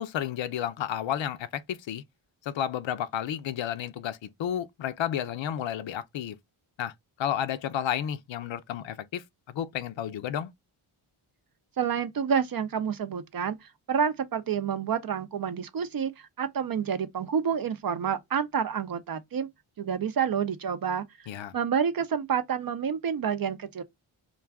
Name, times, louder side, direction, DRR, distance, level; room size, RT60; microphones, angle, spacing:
voice 1, 0.0-2.0 2.4-6.4 6.8-6.9 7.2-10.5 21.3-21.5, left 10 dB, 65° left, 0.6 m, -32 dB
voice 2, 11.8-13.6 13.9-19.5 19.8-21.0 21.5-23.8, right 7 dB, 45° right, 0.6 m, -28 dB
2.4 x 2.3 x 3.4 m
cardioid pair, 60°, 50 cm